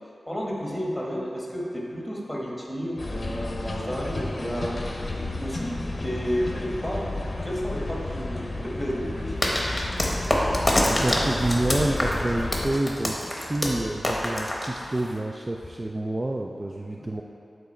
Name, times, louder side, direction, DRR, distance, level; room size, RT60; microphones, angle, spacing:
voice 1, 0.3-4.8 5.1-9.3, equal, 5° left, -4 dB, 1.3 m, -31 dB
sound 1, 3.0-12.7, left 2 dB, 45° left, 0.7 m, -32 dB
sound 2, 9.4-15.2, left 1 dB, 20° left, 1.0 m, -26 dB
voice 2, 10.9-17.2, right 1 dB, 25° right, -1 dB, 0.3 m, -28 dB
9.2 x 4.0 x 4.3 m, 2.6 s
wide cardioid pair, 110°, 0 cm